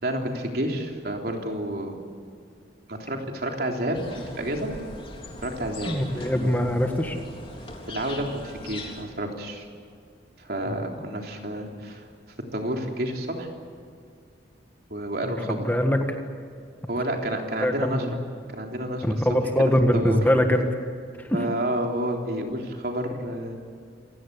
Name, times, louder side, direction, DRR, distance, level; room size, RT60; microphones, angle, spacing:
voice 1, 0.0-1.9 2.9-4.7 5.4-6.0 7.9-9.7 10.4-12.0 12.5-13.5 14.9-15.7 16.9-18.2 18.5-19.5 19.9-20.2 21.3-23.6, right 1 dB, 60° right, 2 dB, 3.5 m, -30 dB
sound 1, 3.9-9.1, left 2 dB, 30° left, 3.7 m, -40 dB
voice 2, 5.9-7.2 10.7-10.8 15.3-16.2 17.6-18.1 19.0-20.7, equal, 10° left, 4 dB, 1.7 m, -23 dB
27.5 x 17.5 x 8.4 m, 2.3 s
head